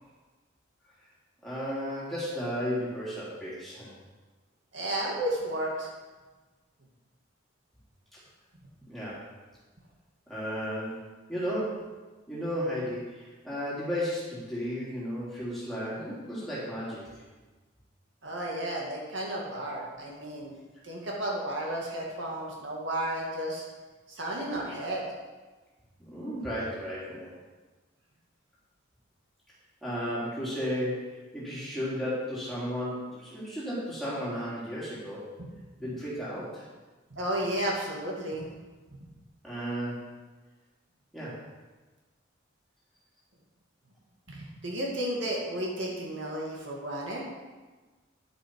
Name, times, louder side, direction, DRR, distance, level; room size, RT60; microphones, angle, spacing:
voice 1, 1.4-3.9 8.9-9.2 10.3-11.9 12.3-17.1 26.1-27.3 29.8-31.1 31.3-35.3 35.8-36.7 39.4-40.0 41.1-41.4, equal, ahead, -9 dB, 3.5 m, -34 dB
voice 2, 4.7-5.9 18.2-20.5 20.8-23.7 24.1-25.0 37.1-38.5 44.3-47.2, right 1 dB, 65° right, -3 dB, 2.2 m, -33 dB
10.5 x 8.7 x 4.8 m, 1.3 s
head